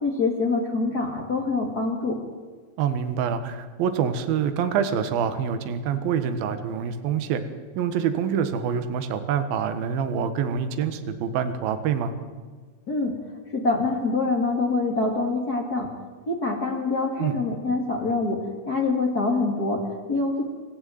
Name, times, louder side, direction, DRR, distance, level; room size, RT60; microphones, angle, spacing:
voice 1, 0.0-2.2 12.9-13.1 13.5-15.9 16.3-18.4 18.7-20.4, left 3 dB, 30° left, 1 dB, 1.8 m, -25 dB
voice 2, 2.8-7.4 7.8-12.1 17.2-17.4, right 7 dB, 60° right, 9 dB, 3.0 m, -26 dB
27.0 x 14.5 x 9.4 m, 1.5 s
omnidirectional pair, 5.3 m